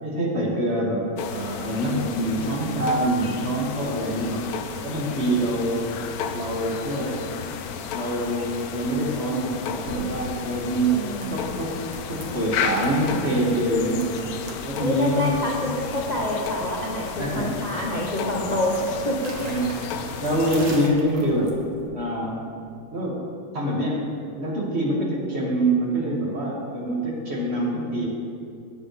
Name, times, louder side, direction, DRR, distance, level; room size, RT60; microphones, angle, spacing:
voice 1, 0.0-4.4 4.8-5.9 6.3-7.2 7.9-11.0 11.3-11.8 12.1-14.1 14.6-15.3 17.2-17.6 19.4-19.9 20.2-22.4 22.9-23.2 23.5-24.1 24.4-28.1, right 1 dB, 30° right, -3 dB, 1.8 m, -25 dB
sound 1, 1.2-20.9, left 7 dB, 85° left, 0.8 m, -33 dB
sound 2, 9.8-21.9, right 2 dB, 70° right, 2.0 m, -43 dB
voice 2, 10.9-11.4 14.8-18.8 19.0-19.3, left 1 dB, 40° left, -3 dB, 0.6 m, -27 dB
18.0 x 7.6 x 3.2 m, 2.4 s
omnidirectional pair, 2.3 m